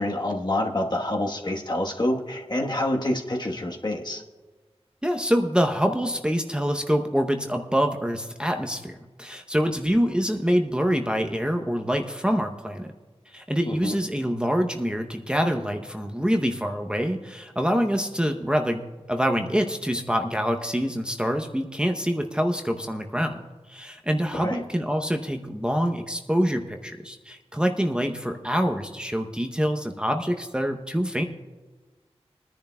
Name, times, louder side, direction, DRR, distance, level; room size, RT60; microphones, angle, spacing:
voice 1, 0.0-4.2 13.7-14.0 24.3-24.6, left 1 dB, 40° left, 1 dB, 1.2 m, -27 dB
voice 2, 5.0-12.9 13.3-23.4 23.7-31.2, equal, 10° right, 3 dB, 0.7 m, -25 dB
23.0 x 10.5 x 2.2 m, 1.3 s
wide cardioid pair, 65°, 11 cm